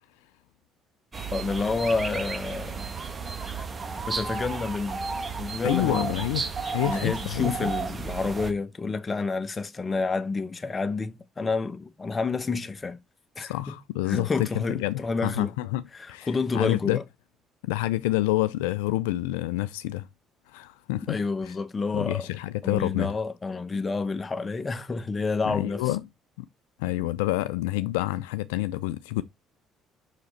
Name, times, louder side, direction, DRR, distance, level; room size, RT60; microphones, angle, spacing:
sound 1, 1.1-8.5, right 4 dB, 35° right, 1.4 m, -33 dB
voice 1, 1.3-2.8 3.5-3.6 4.1-5.0 5.4-6.1 6.8-13.0 13.4-13.8 14.1-15.5 15.9-17.0 21.1-22.3 22.6-25.9, left 4 dB, 30° left, 1.0 m, -29 dB
voice 2, 5.6-7.7 13.4-15.8 16.1-16.3 16.5-17.0 17.6-20.1 20.5-21.2 21.9-23.1 25.4-26.0 26.4-26.5 26.8-29.2, left 17 dB, 80° left, 0.4 m, -28 dB
6.0 x 5.0 x 4.2 m
hypercardioid pair, 55°, 0 cm